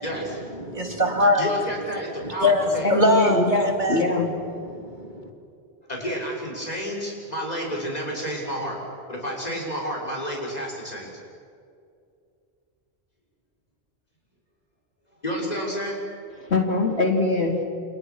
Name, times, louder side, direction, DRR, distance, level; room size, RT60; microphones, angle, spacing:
voice 1, 0.0-0.4 1.3-2.9 5.9-8.8 9.1-11.1 15.2-16.0, equal, 40° left, -2 dB, 6.8 m, -30 dB
voice 2, 0.6-1.4 2.2-4.0 4.7-5.3, left 1 dB, 45° right, 3 dB, 2.8 m, -22 dB
voice 3, 2.8-4.3 16.4-17.6, left 2 dB, 85° left, 2 dB, 3.5 m, -22 dB
29.0 x 29.0 x 6.4 m, 2.4 s
omnidirectional pair, 1.1 m